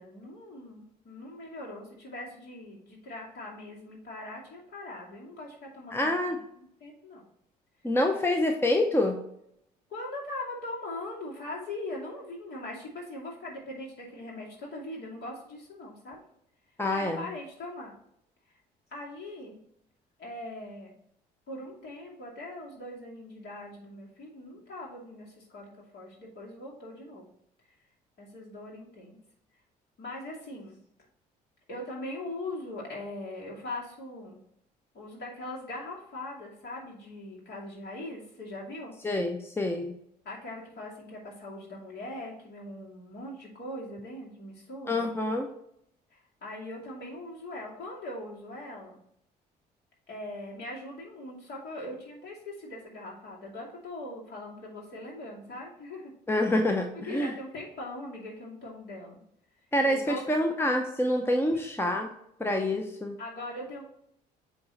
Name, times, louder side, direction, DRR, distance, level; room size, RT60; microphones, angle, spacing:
voice 1, 0.0-7.2 9.9-16.2 16.9-18.0 18.5-18.6 18.9-19.6 20.2-20.9 21.5-27.3 28.2-29.2 30.0-30.8 31.7-34.4 34.9-38.9 40.2-45.0 46.1-49.0 50.1-56.1 56.9-59.2 59.8-60.2 63.2-63.8, left 1 dB, 50° left, -3 dB, 2.5 m, -41 dB
voice 2, 5.9-6.4 7.8-9.2 16.8-17.3 39.0-39.9 44.9-45.5 56.3-57.3 59.7-62.1 62.4-63.2, left 1 dB, 10° left, 4 dB, 0.9 m, -27 dB
8.3 x 3.2 x 4.2 m, 0.73 s
hypercardioid pair, 55°, 21 cm